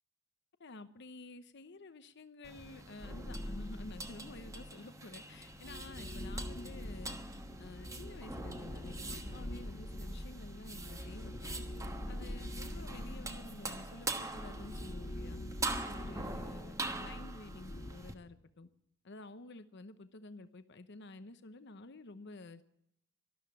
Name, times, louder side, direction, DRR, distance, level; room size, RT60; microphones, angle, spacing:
voice 1, 0.6-7.2 7.6-11.6 12.1-15.4 15.8-18.7 19.0-22.6, left 2 dB, 55° left, 11 dB, 0.8 m, -51 dB
sound 1, 2.4-18.1, right 2 dB, 15° right, 1.2 m, -44 dB
sound 2, 3.0-4.8 5.4-17.9, left 1 dB, 30° left, 0.9 m, -44 dB
12.5 x 12.5 x 8.5 m, 0.74 s
head